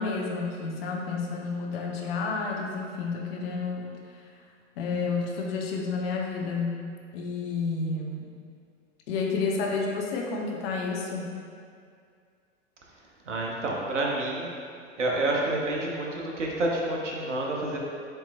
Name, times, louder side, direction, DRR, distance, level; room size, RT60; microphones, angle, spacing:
voice 1, 0.0-3.9 4.8-6.8 7.1-8.3 9.1-11.3, left 4 dB, 55° left, -1 dB, 0.8 m, -30 dB
voice 2, 13.3-14.6 15.0-17.8, right 2 dB, 80° right, -2 dB, 0.9 m, -28 dB
7.6 x 3.0 x 2.2 m, 2.2 s
figure-of-eight pair, 85°, 36 cm